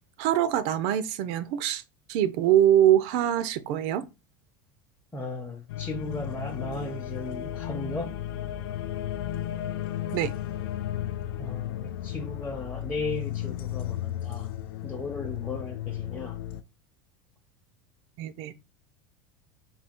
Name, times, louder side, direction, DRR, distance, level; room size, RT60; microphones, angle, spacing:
voice 1, 0.2-1.8 2.1-4.1 10.1-10.3 18.2-18.5, right 11 dB, 60° right, 0.4 m, -23 dB
voice 2, 5.1-8.1 11.4-14.5 14.8-16.4, left 2 dB, 15° left, 0.7 m, -36 dB
sound 1, 5.7-16.6, left 11 dB, 80° left, 0.4 m, -34 dB
3.4 x 2.3 x 4.3 m
supercardioid pair, 110°, 12 cm